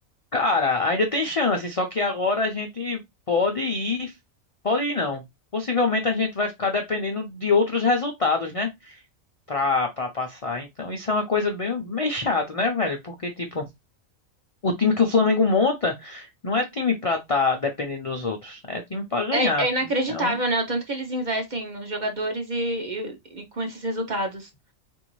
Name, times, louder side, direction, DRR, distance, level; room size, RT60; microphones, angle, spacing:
voice 1, 0.3-3.0 3.3-4.1 4.6-5.2 5.5-9.0 9.5-13.7 14.6-19.7 20.1-20.4, left 3 dB, 60° left, 0.3 m, -24 dB
voice 2, 19.3-24.5, right 1 dB, 45° right, 0.7 m, -27 dB
3.8 x 2.6 x 3.0 m
omnidirectional pair, 1.4 m